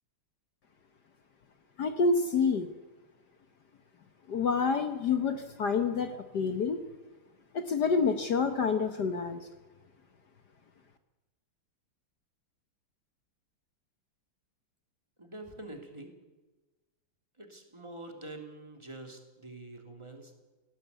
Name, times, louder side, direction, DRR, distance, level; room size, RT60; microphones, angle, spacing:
voice 1, 1.8-2.7 4.3-6.8 7.5-9.4, left 5 dB, 55° left, 9 dB, 1.5 m, -28 dB
voice 2, 15.2-16.1 17.4-20.4, right 2 dB, 15° right, 4 dB, 2.7 m, -46 dB
18.0 x 18.0 x 8.3 m, 1.2 s
omnidirectional pair, 2.4 m